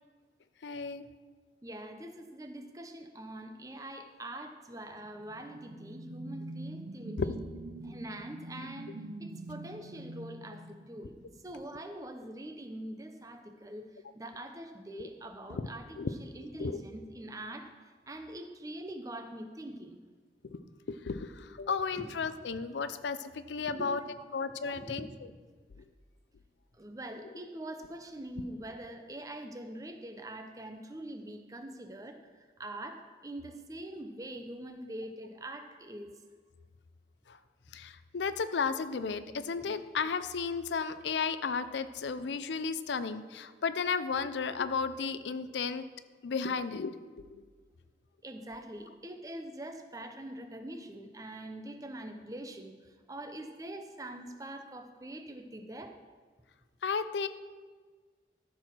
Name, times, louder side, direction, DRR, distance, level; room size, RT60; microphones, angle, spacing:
voice 1, 0.6-1.1 7.2-7.3 15.0-15.1 15.5-15.7 16.0-16.1 16.6-16.8 20.5-24.0 24.3-25.1 37.3-37.4 37.7-45.9 46.2-46.9 47.3-47.4 56.8-57.3, left 5 dB, 85° left, 12 dB, 0.5 m, -33 dB
voice 2, 1.6-7.4 7.8-11.2 11.4-13.9 14.1-17.7 18.1-20.0 21.9-22.1 23.8-25.1 26.8-36.1 38.5-38.6 39.3-39.4 44.2-44.3 45.5-45.6 48.2-55.9, right 1 dB, 20° right, 6 dB, 0.7 m, -44 dB
sound 1, 5.0-11.6, right 2 dB, 60° right, 0.5 m, -45 dB
13.5 x 4.7 x 6.0 m, 1.5 s
head